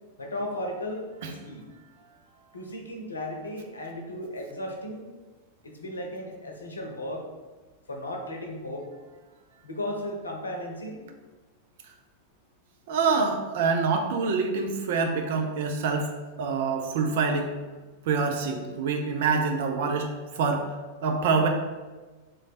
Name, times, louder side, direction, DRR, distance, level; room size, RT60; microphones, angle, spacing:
voice 1, 0.2-1.6 2.5-5.1 5.6-7.3 7.9-8.9 9.6-11.2, left 1 dB, 75° left, 2 dB, 0.7 m, -35 dB
voice 2, 12.9-16.1 16.4-17.5 18.1-20.7 21.0-21.5, right 4 dB, 55° right, 4 dB, 0.6 m, -26 dB
3.8 x 3.2 x 4.0 m, 1.3 s
figure-of-eight pair, 90°, 0 cm